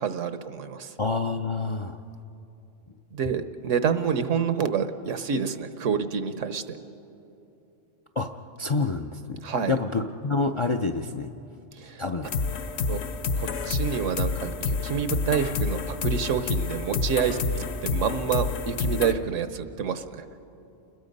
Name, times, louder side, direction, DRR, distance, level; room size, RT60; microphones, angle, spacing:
voice 1, 0.0-0.9 3.1-6.8 9.4-9.8 11.8-12.0 12.9-13.0 13.3-20.3, right 7 dB, 80° right, 11 dB, 1.3 m, -28 dB
voice 2, 1.0-2.0 8.2-8.3 8.6-9.4 9.7-11.3 12.0-12.3 12.8-12.9, left 3 dB, 40° left, 7 dB, 0.4 m, -27 dB
sound 1, 12.2-19.1, left 4 dB, 65° left, 1.0 m, -29 dB
29.0 x 21.0 x 5.4 m, 2.8 s
omnidirectional pair, 1.3 m